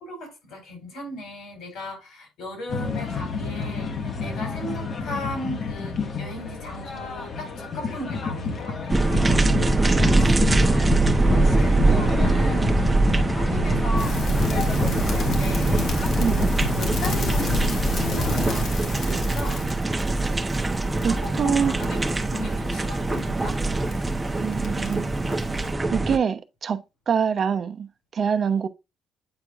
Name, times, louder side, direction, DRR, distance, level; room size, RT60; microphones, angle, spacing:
voice 1, 0.0-8.8 9.1-12.8 13.3-16.0 16.6-19.6 21.0-22.0 22.3-23.6, left 1 dB, 85° left, 4.2 m, -36 dB
sound 1, 2.7-18.7, left 4 dB, 50° left, 1.4 m, -30 dB
sound 2, 8.9-26.2, right 2 dB, 15° right, 0.8 m, -22 dB
sound 3, 14.0-25.7, left 4 dB, 65° left, 1.8 m, -34 dB
voice 2, 16.2-16.6 21.0-21.7 24.4-25.2 25.9-28.7, right 7 dB, 50° right, 0.8 m, -25 dB
8.7 x 4.6 x 2.5 m
cardioid pair, 90°, 0 cm